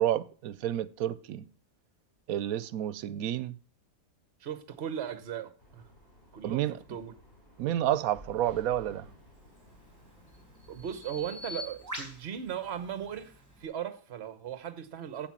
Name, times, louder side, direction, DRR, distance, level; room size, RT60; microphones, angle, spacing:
voice 1, 0.0-1.5 2.3-3.6 6.4-6.8 7.6-9.1, right 11 dB, 85° right, 1.1 m, -30 dB
voice 2, 4.4-5.8 6.3-7.1 10.7-13.3 13.6-15.3, right 9 dB, 50° right, 1.2 m, -37 dB
sound 1, 5.6-11.5, equal, 35° left, 6.5 m, -55 dB
Bird vocalization bird call bird song, 9.4-13.7, left 1 dB, 10° right, 4.2 m, -45 dB
8.8 x 7.7 x 5.8 m
omnidirectional pair, 1.5 m